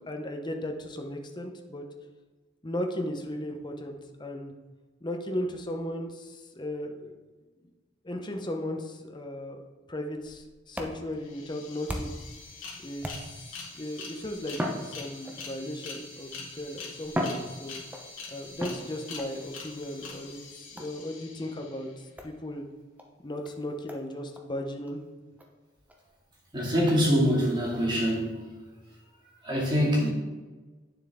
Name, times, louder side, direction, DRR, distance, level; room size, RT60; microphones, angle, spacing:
voice 1, 0.0-1.9 2.6-4.5 5.0-7.1 7.6-7.7 8.0-9.6 9.9-12.1 12.8-13.3 13.7-17.8 18.3-22.6 23.2-25.0, left 1 dB, 25° left, 3 dB, 0.8 m, -36 dB
sound 1, 10.2-12.3 13.0-13.6 14.5-15.6 16.4-16.5 17.0-18.1 18.6-19.3 20.8-21.1 22.2-22.4 23.0-23.1 23.4-23.5 23.9-24.0 24.3-24.5 24.9-25.0 25.4-25.5 25.9-26.0 26.9-27.0, equal, 10° right, 0.8 m, -36 dB
sound 2, 10.9-11.0 11.2-22.0, left 4 dB, 85° left, 2.1 m, -44 dB
voice 2, 26.5-28.5 29.4-30.1, equal, 25° right, -4 dB, 2.3 m, -24 dB
9.2 x 6.9 x 3.6 m, 1.3 s
head